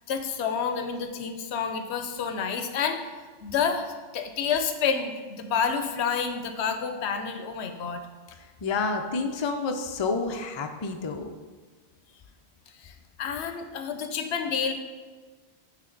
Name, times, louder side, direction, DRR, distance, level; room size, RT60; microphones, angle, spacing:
voice 1, 0.1-3.0 3.4-8.1 12.8-12.9 13.2-14.7, left 6 dB, 90° left, 7 dB, 0.9 m, -29 dB
voice 2, 8.6-11.3, left 4 dB, 40° left, 5 dB, 0.4 m, -29 dB
9.0 x 3.3 x 3.8 m, 1.4 s
omnidirectional pair, 1.1 m